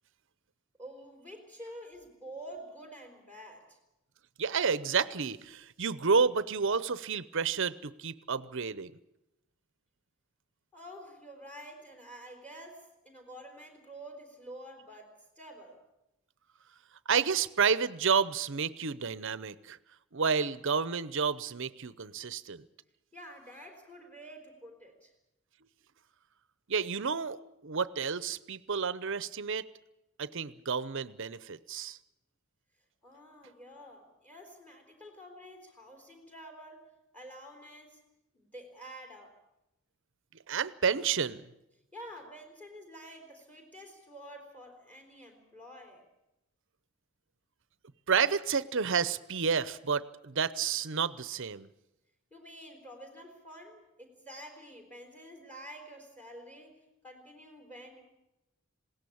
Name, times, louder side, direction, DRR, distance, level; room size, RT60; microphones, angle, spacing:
voice 1, 0.8-3.8 10.7-15.8 23.1-25.1 33.0-36.9 37.1-38.0 38.3-39.4 41.9-46.1 52.3-58.0, equal, 5° left, 4 dB, 3.7 m, -49 dB
voice 2, 4.4-8.9 17.1-19.8 20.1-22.6 26.7-29.6 30.2-32.0 40.5-41.5 48.1-51.7, right 6 dB, 60° right, 17 dB, 0.8 m, -30 dB
20.5 x 17.5 x 8.6 m, 0.91 s
head